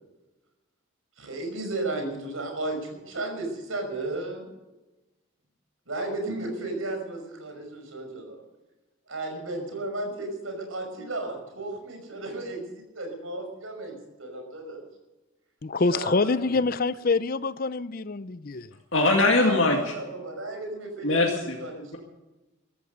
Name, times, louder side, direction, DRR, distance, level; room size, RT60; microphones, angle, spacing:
voice 1, 1.2-4.5 5.9-8.4 9.1-14.9 15.9-16.5 19.3-22.0, right 2 dB, 85° right, 5.7 m, -34 dB
voice 2, 15.6-18.7, left 3 dB, 45° left, 0.6 m, -26 dB
voice 3, 18.9-19.8 21.0-21.6, left 2 dB, 65° left, 2.1 m, -21 dB
15.0 x 13.5 x 6.7 m
head